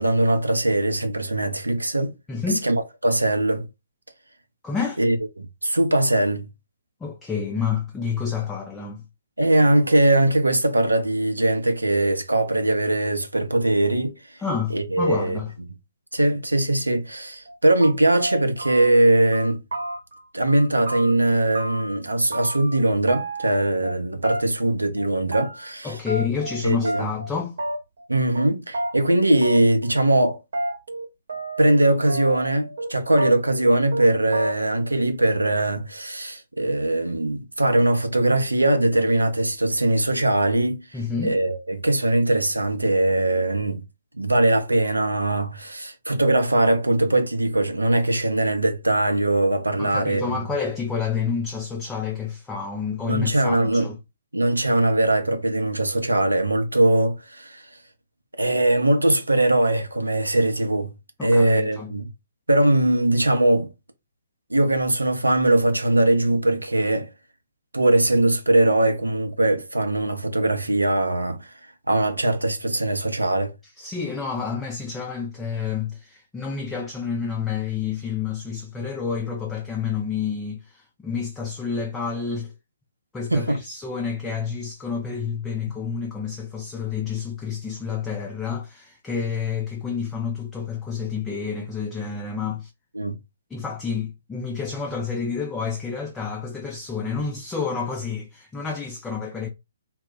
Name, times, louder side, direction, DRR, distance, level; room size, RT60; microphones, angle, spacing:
voice 1, 0.0-2.1 2.6-3.7 5.0-6.5 9.4-14.2 14.7-15.4 16.1-19.6 20.3-26.0 26.6-27.1 28.1-30.4 31.6-40.8 41.2-43.8 44.1-50.4 53.0-53.9 54.3-57.6 58.4-60.9 61.2-62.1 62.5-63.7 64.5-67.1 67.7-71.5 71.9-73.5 83.3-83.6 92.9-93.2, right 1 dB, 80° right, 0.6 m, -21 dB
voice 2, 2.3-2.7 4.6-5.0 7.0-9.0 14.4-15.5 25.8-27.6 40.9-41.4 49.8-54.0 61.2-61.9 73.8-82.5 83.1-92.7 93.5-99.5, left 6 dB, 10° left, 0.4 m, -29 dB
sound 1, 17.5-17.6 17.8-19.0 19.3-20.2 20.5-22.0 22.3-22.8 23.1-23.9 24.2-24.7 25.0-25.7 26.1-26.6 26.8-27.3 27.6-28.0 28.4-28.5 28.7-28.9 29.4-29.9 30.2-31.8 32.1-32.9 33.2-33.6 33.9-34.1 34.3-34.8, right 1 dB, 55° right, 0.9 m, -31 dB
2.2 x 2.1 x 3.7 m
figure-of-eight pair, 130°, 0 cm